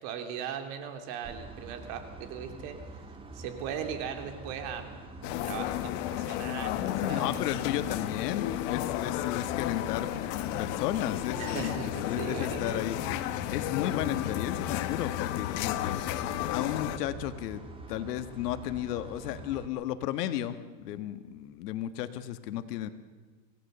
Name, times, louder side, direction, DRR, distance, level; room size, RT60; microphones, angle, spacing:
voice 1, 0.0-2.8 3.3-5.0 5.4-7.3 11.4-12.8, right 8 dB, 50° right, 6 dB, 3.2 m, -38 dB
sound 1, 1.2-19.7, right 2 dB, 10° right, 1.7 m, -46 dB
sound 2, 5.2-17.0, left 14 dB, 50° left, 1.3 m, -33 dB
voice 2, 7.0-16.0 16.4-17.6 17.9-22.9, left 12 dB, 70° left, 10 dB, 1.6 m, -34 dB
25.5 x 17.5 x 6.9 m, 1.5 s
supercardioid pair, 145°, 50 cm